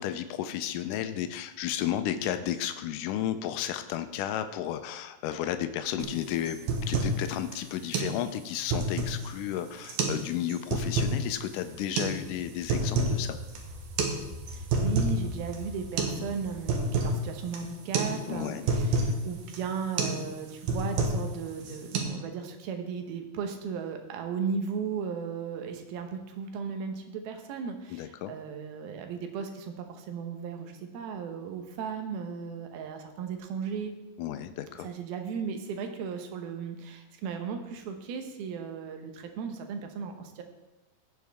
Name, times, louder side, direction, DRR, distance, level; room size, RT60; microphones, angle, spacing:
voice 1, 0.0-6.6 6.9-13.4 18.3-18.7 27.9-28.3 34.2-34.9, left 11 dB, 85° left, 10 dB, 1.8 m, -33 dB
sound 1, 6.0-6.1 6.5-7.2 7.5-7.6 7.9-8.1 8.5-9.3 9.8-10.2 10.5-11.2 12.0-12.1 12.5-13.2 13.5-13.6 14.0-14.2 14.5-15.2 15.5-15.6 16.0-16.2 16.5-17.2 17.5-17.7 17.9-18.1 18.4-19.1 19.5-19.7 20.0-20.2 20.5-21.3 21.6-22.0, right 3 dB, 65° right, 2.4 m, -28 dB
sound 2, 11.7-18.3, equal, ahead, 1.8 m, -45 dB
voice 2, 14.5-33.9 34.8-40.4, right 6 dB, 85° right, 5 dB, 2.9 m, -36 dB
15.5 x 7.2 x 3.5 m, 1.0 s
omnidirectional pair, 4.3 m